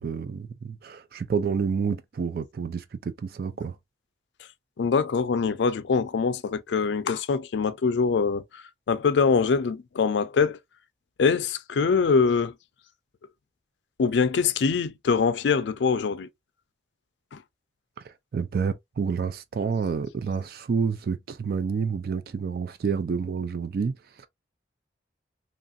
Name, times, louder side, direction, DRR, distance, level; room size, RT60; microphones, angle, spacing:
voice 1, 0.0-3.8 18.0-24.3, right 5 dB, 55° right, 0.3 m, -29 dB
voice 2, 4.8-10.6 11.2-12.5 14.0-16.3 17.3-17.4, left 5 dB, 75° left, 0.4 m, -24 dB
3.0 x 2.5 x 2.5 m
head